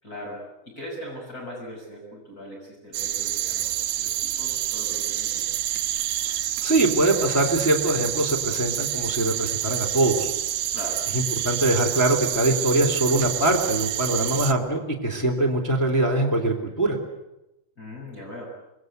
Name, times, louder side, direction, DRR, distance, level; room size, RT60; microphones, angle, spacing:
voice 1, 0.0-5.7 10.7-11.0 17.8-18.5, equal, 20° left, -3 dB, 6.8 m, -40 dB
sound 1, 2.9-14.5, right 12 dB, 70° right, 2.6 m, -28 dB
voice 2, 6.6-10.3 11.1-17.0, right 2 dB, 5° left, 1 dB, 3.0 m, -23 dB
27.0 x 20.5 x 8.2 m, 0.92 s
omnidirectional pair, 4.7 m